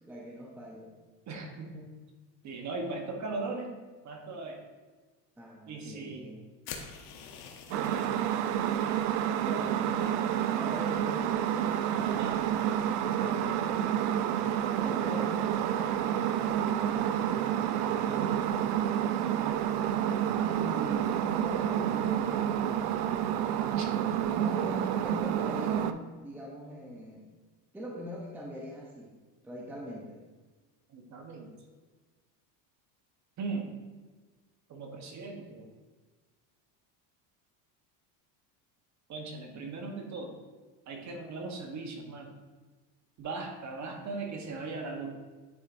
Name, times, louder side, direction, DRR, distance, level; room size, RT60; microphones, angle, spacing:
voice 1, 0.0-1.0 5.4-6.4 9.4-10.2 10.5-11.8 13.2-13.9 14.5-17.4 20.4-22.9 24.3-27.3 27.7-29.2 29.4-30.2, equal, 5° right, -2 dB, 0.6 m, -42 dB
voice 2, 1.3-2.0 2.4-3.7 4.0-4.6 5.7-6.3 7.7-8.2 12.0-12.4 18.0-18.4 23.7-23.9 30.9-31.5 33.4-33.8 34.7-35.7 39.1-40.4 40.9-42.3 43.2-45.2, right 3 dB, 35° right, 3 dB, 1.1 m, -39 dB
sound 1, 6.6-8.8, left 7 dB, 80° left, 1.0 m, -46 dB
sound 2, 7.7-25.9, right 10 dB, 85° right, 0.5 m, -29 dB
9.5 x 4.2 x 2.5 m, 1.3 s
supercardioid pair, 120°, 46 cm